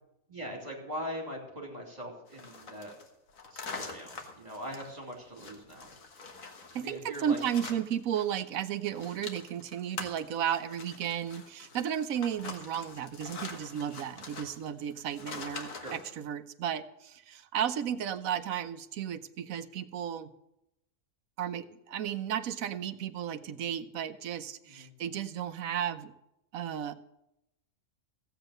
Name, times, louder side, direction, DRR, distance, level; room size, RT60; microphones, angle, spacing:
voice 1, 0.3-2.9 3.5-5.9 6.8-7.4 13.7-14.0 15.8-15.9 24.7-24.9, equal, 30° right, 0 dB, 3.1 m, -41 dB
sound 1, 2.3-8.4 8.7-16.1, left 4 dB, 70° left, 1.8 m, -45 dB
voice 2, 6.7-20.3 21.4-26.1 26.5-26.9, right 9 dB, 75° right, 11 dB, 1.1 m, -34 dB
15.0 x 8.0 x 6.5 m, 0.85 s
omnidirectional pair, 1.4 m